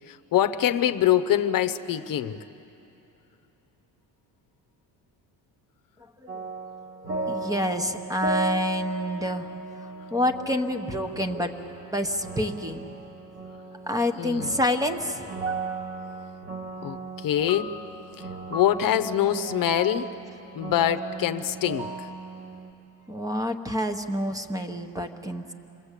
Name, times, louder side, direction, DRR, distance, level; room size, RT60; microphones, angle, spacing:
voice 1, 0.1-2.4 14.2-14.5 16.8-17.7 18.2-20.1 20.5-22.1, left 11 dB, 55° left, 10 dB, 0.8 m, -24 dB
sound 1, 6.3-22.7, right 3 dB, 40° right, 1.8 m, -36 dB
voice 2, 7.3-9.5 10.1-11.5 11.9-12.8 13.9-15.5 23.1-25.5, left 1 dB, 10° right, 6 dB, 1.1 m, -28 dB
27.5 x 21.0 x 8.3 m, 2.9 s
cardioid pair, 130°, 39 cm